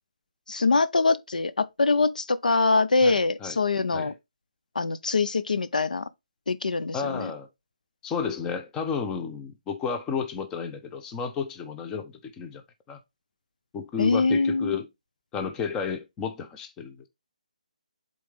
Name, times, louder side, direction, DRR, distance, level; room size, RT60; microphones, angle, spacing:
voice 1, 0.5-4.1 4.7-6.1 6.5-7.3 14.0-14.8, left 3 dB, 90° left, 0.6 m, -24 dB
voice 2, 6.9-7.5 8.0-12.6 12.9-13.0 13.7-14.9 15.3-17.1, left 6 dB, 15° left, 0.6 m, -32 dB
7.6 x 3.9 x 3.4 m
hypercardioid pair, 160°, 4 cm